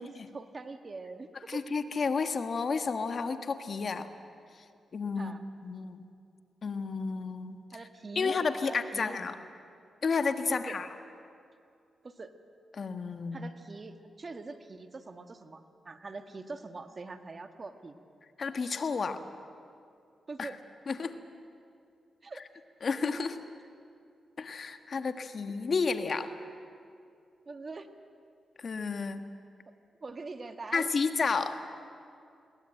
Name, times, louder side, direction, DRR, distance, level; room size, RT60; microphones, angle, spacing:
voice 1, 0.0-1.7 5.2-5.4 7.7-8.4 8.6-9.2 10.5-10.8 12.0-12.3 13.3-18.0 20.3-20.6 22.2-22.4 27.5-27.9 30.0-30.9, right 3 dB, 45° right, 7 dB, 1.6 m, -43 dB
voice 2, 1.5-4.1 4.9-5.3 5.6-6.0 6.6-7.6 8.1-9.3 10.0-10.9 12.7-13.5 18.4-19.2 20.4-20.5 20.9-21.1 22.8-23.4 24.4-26.3 28.6-29.2 30.7-31.6, left 4 dB, 55° left, 8 dB, 1.4 m, -31 dB
21.5 x 19.0 x 8.9 m, 2.4 s
supercardioid pair, 50°, 0 cm